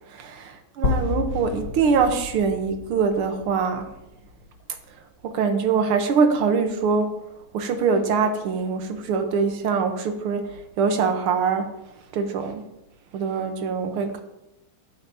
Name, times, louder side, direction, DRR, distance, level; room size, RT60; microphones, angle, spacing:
voice 1, 0.1-3.9 5.2-7.1 7.5-11.7 12.1-12.6 13.1-14.2, right 5 dB, 90° right, 7 dB, 1.9 m, -23 dB
sound 1, 0.8-4.8, left 5 dB, 50° left, 1.1 m, -31 dB
11.5 x 9.1 x 2.7 m, 0.90 s
omnidirectional pair, 2.4 m